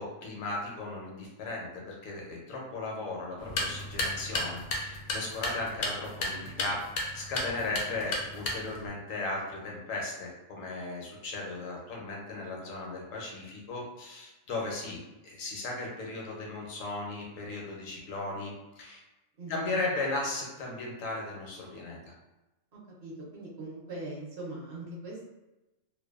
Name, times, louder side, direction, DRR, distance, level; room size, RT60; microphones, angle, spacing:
voice 1, 0.0-6.8 7.1-19.0 19.5-22.1, left 2 dB, 80° left, -1 dB, 1.0 m, -36 dB
sound 1, 3.4-8.9, left 2 dB, 65° left, 0.6 m, -34 dB
voice 2, 19.4-19.7 22.7-25.2, right 2 dB, 60° right, -5 dB, 0.8 m, -41 dB
2.5 x 2.2 x 2.3 m, 1.0 s
omnidirectional pair, 1.4 m